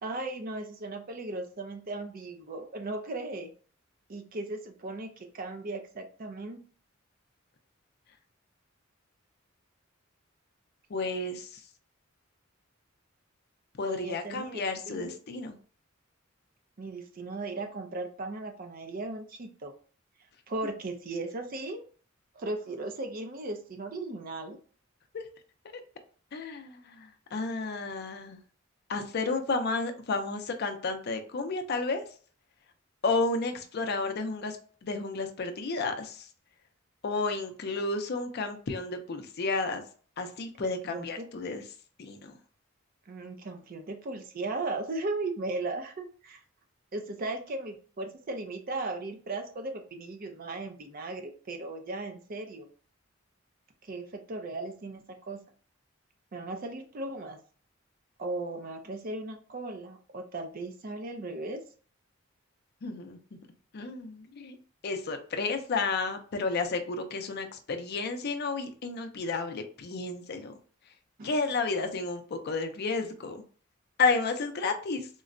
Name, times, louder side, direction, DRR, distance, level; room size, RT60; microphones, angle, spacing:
voice 1, 0.0-3.5 4.1-6.6 13.8-15.1 16.8-19.7 20.5-21.8 22.4-24.6 40.6-41.3 43.1-46.4 46.9-52.7 53.8-55.4 56.3-57.4 58.2-61.6 71.2-71.4, right 2 dB, 45° right, 5 dB, 0.5 m, -37 dB
voice 2, 10.9-11.5 13.8-15.6 25.1-25.2 25.6-25.8 26.3-28.4 28.9-32.0 33.0-34.6 34.8-36.3 37.0-39.8 40.2-41.6 42.0-42.3 62.8-63.2 63.7-64.6 64.8-70.5 71.2-73.4 74.0-75.1, left 3 dB, 55° left, 7 dB, 0.5 m, -31 dB
3.7 x 2.1 x 2.5 m, 0.42 s
head